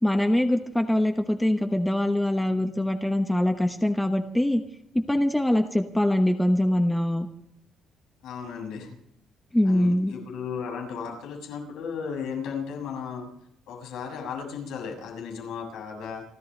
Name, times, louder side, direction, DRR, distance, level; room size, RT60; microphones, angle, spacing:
voice 1, 0.0-4.6 4.9-7.3 9.5-10.1, left 1 dB, 5° left, 5 dB, 1.0 m, -23 dB
voice 2, 8.2-8.9 9.6-13.3 13.7-16.2, left 6 dB, 90° left, 1 dB, 7.0 m, -35 dB
29.5 x 13.0 x 3.3 m, 0.75 s
cardioid pair, 150°, 0 cm